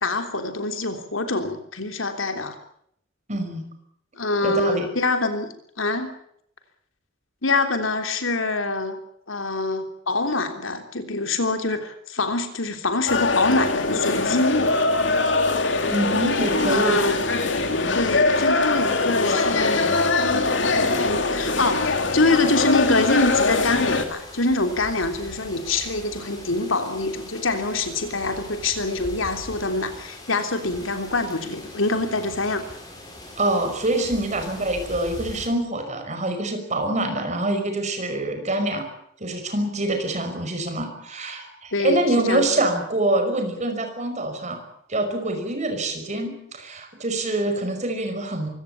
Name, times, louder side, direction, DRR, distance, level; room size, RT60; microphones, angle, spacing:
voice 1, 0.0-2.5 4.2-5.5 5.8-6.1 7.4-9.0 9.3-14.7 16.7-17.2 17.9-32.6 41.7-42.5, left 2 dB, 90° left, 7 dB, 3.3 m, -25 dB
voice 2, 3.3-3.7 4.4-4.9 15.9-17.0 33.4-38.9 39.2-44.6 44.9-48.5, right 1 dB, 35° right, 6 dB, 5.4 m, -25 dB
sound 1, 13.1-24.1, left 3 dB, 65° left, 2.9 m, -22 dB
sound 2, 19.8-35.5, left 1 dB, 20° left, 7.2 m, -42 dB
24.0 x 17.0 x 8.5 m, 0.71 s
head